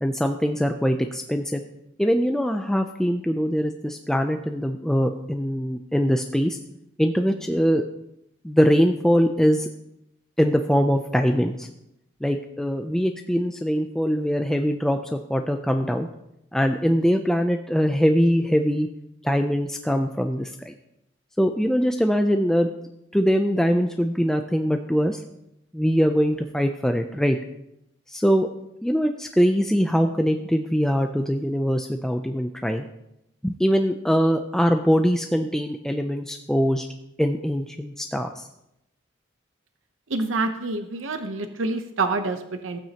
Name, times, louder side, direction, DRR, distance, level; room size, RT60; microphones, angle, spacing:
voice 1, 0.0-1.6 2.0-6.6 7.0-7.8 8.4-9.7 10.4-11.7 12.2-16.1 16.5-18.9 19.2-20.7 21.4-22.7 23.1-25.2 25.7-27.4 28.1-28.5 28.8-32.9 33.4-36.9 37.2-38.5, equal, 5° left, 5 dB, 0.4 m, -22 dB
voice 2, 40.1-42.8, right 3 dB, 85° right, 7 dB, 0.8 m, -27 dB
15.0 x 8.8 x 2.9 m, 0.84 s
head